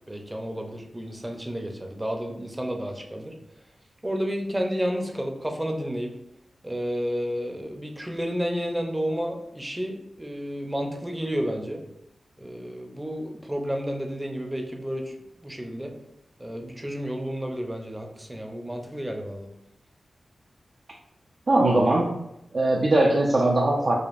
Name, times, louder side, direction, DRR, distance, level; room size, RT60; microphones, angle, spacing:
voice 1, 0.1-3.3 4.0-6.1 6.6-11.8 12.4-15.1 15.4-15.9 16.4-19.5, equal, 15° right, 3 dB, 0.6 m, -31 dB
voice 2, 21.5-22.1 22.5-23.9, right 2 dB, 55° right, -2 dB, 0.5 m, -20 dB
5.0 x 2.4 x 2.5 m, 0.82 s
cardioid pair, 60°, 0 cm